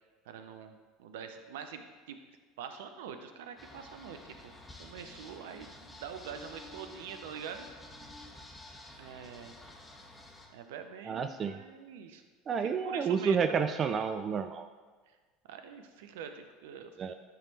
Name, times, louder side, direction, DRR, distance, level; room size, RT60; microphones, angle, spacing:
voice 1, 0.3-2.2 2.6-4.5 4.8-7.7 9.0-9.6 10.5-12.2 12.6-13.7 15.5-16.9, right 7 dB, 70° right, 7 dB, 0.6 m, -45 dB
sound 1, 3.6-10.5, left 1 dB, 15° left, 1.3 m, -51 dB
voice 2, 11.0-11.5 12.5-14.7 17.0-17.1, right 6 dB, 35° right, 9 dB, 0.3 m, -30 dB
10.5 x 3.5 x 4.1 m, 1.4 s
hypercardioid pair, 75°, 0 cm